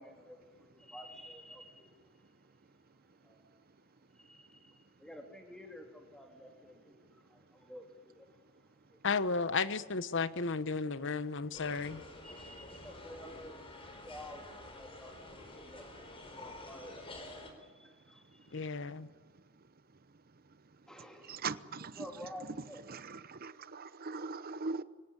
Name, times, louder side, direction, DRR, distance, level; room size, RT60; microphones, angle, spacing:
voice 1, 0.0-1.9 3.2-3.4 4.1-8.3 8.9-9.0 12.2-14.4 14.8-15.9 16.3-18.7 20.9-21.5 22.0-22.8, equal, 5° left, 3.4 m, -51 dB
voice 2, 9.0-12.0 18.5-19.1, left 4 dB, 60° left, 1.1 m, -33 dB
sound 1, 11.5-17.5, left 2 dB, 25° left, 4.4 m, -49 dB
voice 3, 21.3-22.0 22.9-24.8, right 4 dB, 45° right, 0.9 m, -40 dB
24.0 x 17.5 x 10.0 m
head